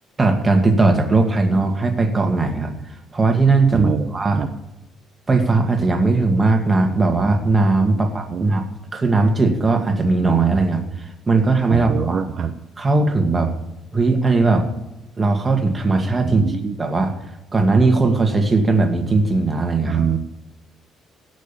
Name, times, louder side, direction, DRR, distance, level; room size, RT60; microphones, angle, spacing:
voice 1, 0.2-2.8 3.1-4.4 5.3-8.7 8.9-12.2 12.8-13.5 13.9-14.6 15.2-16.5 16.8-17.1 17.5-20.0, right 3 dB, 20° right, 4 dB, 2.2 m, -18 dB
voice 2, 3.7-4.1 4.3-4.5 7.9-8.4 11.7-12.5 16.2-16.7 19.9-20.2, right 7 dB, 50° right, 5 dB, 1.0 m, -24 dB
16.5 x 6.4 x 8.7 m, 0.94 s
cardioid pair, 120°, 0 cm